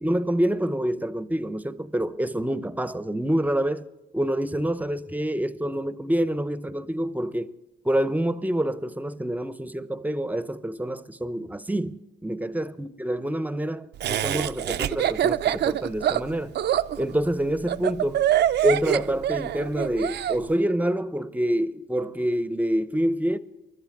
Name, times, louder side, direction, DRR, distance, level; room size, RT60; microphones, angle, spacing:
voice 1, 0.0-3.9 4.1-7.5 7.8-16.5 17.0-18.3 18.6-23.4, right 1 dB, 10° right, 0.7 m, -27 dB
Laughter, 14.0-20.4, right 11 dB, 60° right, 0.5 m, -24 dB
24.0 x 12.5 x 3.6 m
cardioid pair, 90°, 20 cm